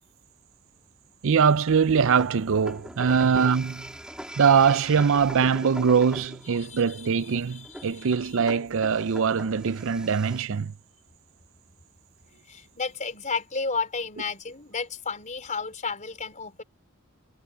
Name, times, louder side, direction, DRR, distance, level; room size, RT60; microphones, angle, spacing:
voice 1, 1.2-3.9 4.4-10.7, right 6 dB, 60° right, 0.5 m, -22 dB
sound 1, 2.1-10.4, equal, 5° right, 3.6 m, -42 dB
voice 2, 6.6-8.1 12.5-16.6, left 4 dB, 35° left, 4.3 m, -33 dB
head